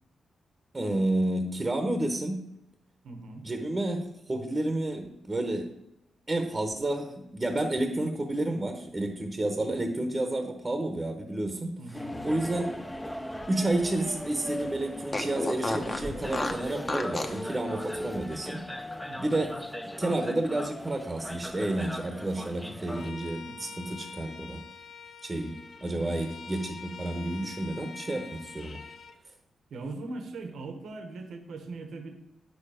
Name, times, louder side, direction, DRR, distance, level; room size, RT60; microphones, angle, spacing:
voice 1, 0.7-2.5 3.4-5.7 6.3-11.7 12.2-12.8 13.5-18.6 19.2-19.6 20.0-24.6 25.2-28.8, right 1 dB, 20° right, 6 dB, 1.0 m, -30 dB
voice 2, 3.0-3.5 11.8-12.5 19.1-19.4 23.4-23.8 29.7-32.2, right 3 dB, 80° right, 6 dB, 1.2 m, -41 dB
sound 1, 11.9-23.1, left 1 dB, 5° left, 0.6 m, -39 dB
Fart, 12.1-14.2 14.5-14.6 15.1-17.4, left 2 dB, 20° left, 0.9 m, -34 dB
Bowed string instrument, 22.9-29.2, left 5 dB, 45° left, 0.7 m, -45 dB
9.5 x 6.7 x 5.0 m, 0.88 s
wide cardioid pair, 130°, 0 cm